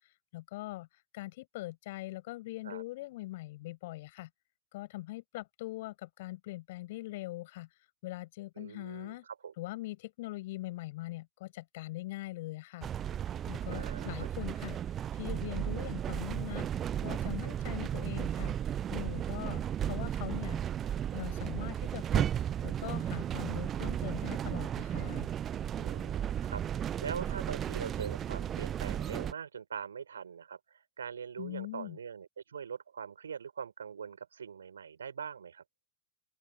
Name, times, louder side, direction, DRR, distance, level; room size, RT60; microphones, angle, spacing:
voice 1, 0.3-0.9 1.1-4.3 4.7-7.7 8.0-9.2 9.6-12.9 13.5-14.8 15.1-16.7 17.0-18.6 18.9-20.6 21.1-22.3 22.6-25.3 31.4-32.0, left 18 dB, 50° left, 5.9 m, -42 dB
voice 2, 8.5-9.5 13.7-14.3 25.8-35.6, right 7 dB, 70° right, 5.2 m, -42 dB
sound 1, 12.8-29.3, right 10 dB, 25° right, 0.4 m, -34 dB
open air
figure-of-eight pair, 90°, 0 cm